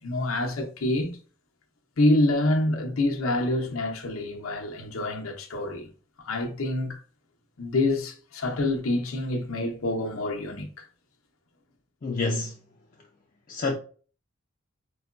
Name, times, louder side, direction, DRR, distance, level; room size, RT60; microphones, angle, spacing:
voice 1, 0.0-1.2 2.0-5.9 6.2-7.0 7.6-10.9, left 1 dB, 85° left, 0.8 m, -27 dB
voice 2, 12.0-12.6 13.5-13.7, left 3 dB, 40° left, 0.4 m, -27 dB
4.7 x 2.2 x 2.4 m
head